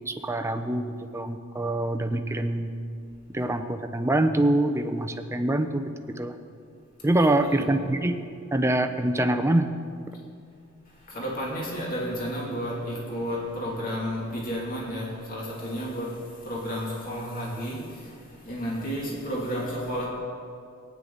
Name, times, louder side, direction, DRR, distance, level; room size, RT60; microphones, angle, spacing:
voice 1, 0.1-0.8 1.1-2.7 3.3-5.8 6.2-6.3 7.0-8.2 8.5-9.7, right 1 dB, 15° right, 7 dB, 0.6 m, -24 dB
voice 2, 7.0-7.7 10.9-20.1, equal, 45° left, -4 dB, 2.5 m, -32 dB
18.0 x 9.5 x 3.9 m, 2.4 s
head